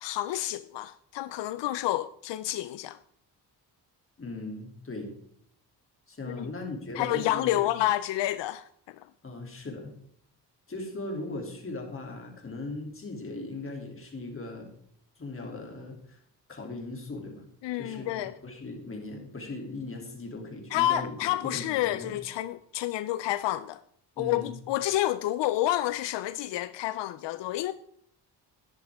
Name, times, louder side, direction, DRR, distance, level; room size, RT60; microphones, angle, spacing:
voice 1, 0.0-3.0 6.3-6.5 7.0-8.7 17.6-18.3 20.7-23.8 24.2-27.7, left 14 dB, 85° left, 0.5 m, -29 dB
voice 2, 4.2-5.1 6.1-7.7 9.2-9.9 10.7-14.7 15.2-16.2 16.5-17.4 17.7-18.1 18.4-22.2 24.2-24.6, left 2 dB, 30° left, 2.8 m, -38 dB
11.5 x 10.0 x 3.5 m
cardioid pair, 100°, 42 cm